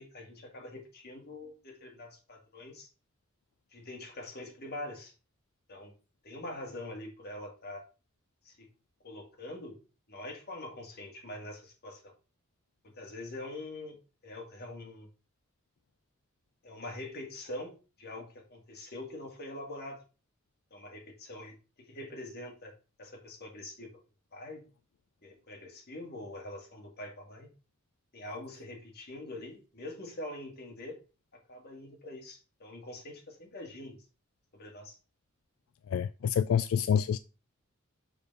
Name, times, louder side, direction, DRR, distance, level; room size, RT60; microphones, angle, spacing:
voice 1, 0.0-2.9 3.7-5.1 5.7-5.9 6.2-7.8 8.4-8.7 9.0-9.8 10.1-12.1 12.8-15.1 16.6-20.0 20.7-22.7 23.0-23.9 24.3-24.6 25.2-27.5 28.1-31.0 31.3-34.0 34.5-35.0, left 1 dB, 50° left, 2.4 m, -44 dB
voice 2, 35.9-37.2, left 8 dB, 80° left, 0.3 m, -27 dB
6.8 x 4.6 x 5.5 m
head